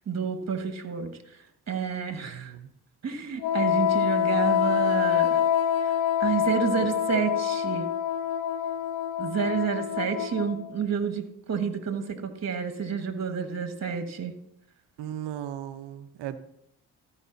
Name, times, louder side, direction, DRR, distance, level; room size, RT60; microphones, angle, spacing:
voice 1, 0.1-1.1 1.7-2.5 3.0-5.4 6.2-7.8 9.2-14.3, right 6 dB, 40° right, 1.6 m, -29 dB
voice 2, 2.2-2.7 15.0-16.4, right 11 dB, 75° right, 0.9 m, -37 dB
Wind instrument woodwind instrument, 3.4-10.7, left 9 dB, 85° left, 0.8 m, -26 dB
14.5 x 5.2 x 4.0 m
supercardioid pair, 60°, 42 cm